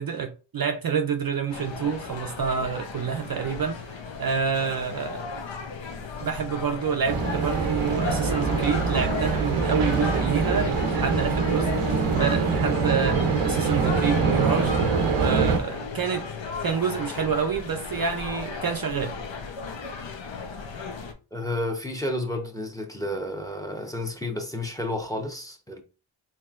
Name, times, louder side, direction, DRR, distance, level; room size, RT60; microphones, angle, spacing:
voice 1, 0.0-3.8 4.2-5.3 6.2-14.7 15.2-16.3 16.6-19.2, right 6 dB, 50° right, 0.5 m, -28 dB
sound 1, 1.5-21.1, left 4 dB, 65° left, 0.8 m, -35 dB
sound 2, 7.1-15.6, right 4 dB, 85° right, 0.7 m, -24 dB
voice 2, 21.3-25.8, left 1 dB, 5° left, 0.8 m, -31 dB
4.3 x 3.2 x 2.4 m
cardioid pair, 55°, 48 cm